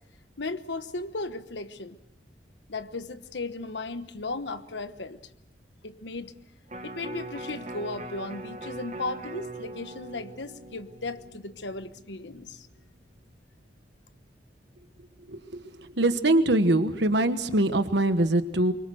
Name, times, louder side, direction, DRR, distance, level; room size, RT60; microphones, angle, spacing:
voice 1, 0.4-2.0 2.7-5.2 5.8-6.3 6.8-12.7, left 3 dB, 70° left, 11 dB, 1.2 m, -36 dB
Electric guitar, 6.7-12.9 13.3-13.4, right 2 dB, 40° right, 1.5 m, -41 dB
voice 2, 15.3-18.7, right 1 dB, 65° right, 9 dB, 1.3 m, -23 dB
24.5 x 23.5 x 6.4 m, 0.82 s
head